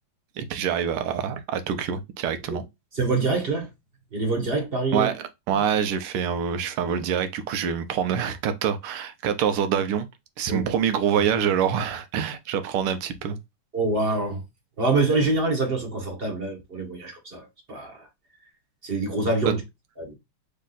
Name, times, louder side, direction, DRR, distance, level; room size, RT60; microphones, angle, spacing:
voice 1, 0.4-2.6 4.9-10.1 10.4-13.4, right 8 dB, 85° right, 1.6 m, -26 dB
voice 2, 2.9-3.7 4.1-5.1 10.5-10.6 13.7-14.4 14.8-18.1 18.8-19.6 20.0-20.1, right 3 dB, 35° right, 1.2 m, -25 dB
3.7 x 3.3 x 3.9 m
omnidirectional pair, 2.4 m